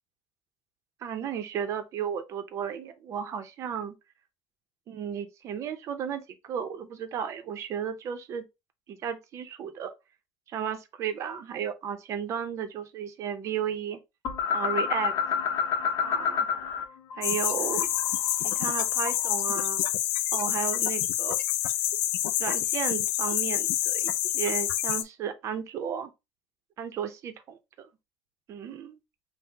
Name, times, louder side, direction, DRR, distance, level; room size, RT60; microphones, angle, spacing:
voice 1, 1.0-4.0 4.9-8.4 8.9-9.9 10.5-14.0 14.5-15.1 16.0-16.5 17.2-17.9 18.4-19.9 20.3-21.4 22.4-26.1 26.8-27.9 28.5-29.0, right 8 dB, 40° right, 0.6 m, -34 dB
sound 1, 14.2-16.8 17.1-19.4, left 7 dB, 50° left, 0.8 m, -29 dB
sound 2, 17.2-25.0, left 13 dB, 75° left, 0.4 m, -27 dB
5.5 x 2.1 x 2.7 m
cardioid pair, 135°, 8 cm